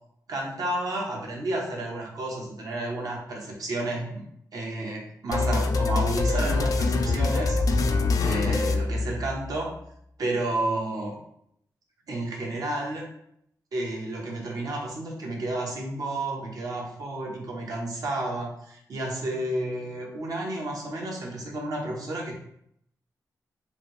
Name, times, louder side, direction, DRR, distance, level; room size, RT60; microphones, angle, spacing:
voice 1, 0.3-4.2 4.5-7.6 8.2-9.7 10.2-11.2 12.1-13.1 13.7-22.3, right 2 dB, 60° right, -1 dB, 0.9 m, -31 dB
sound 1, 5.3-9.6, left 3 dB, 60° left, 0.3 m, -24 dB
3.2 x 2.7 x 3.1 m, 0.72 s
wide cardioid pair, 115°, 7 cm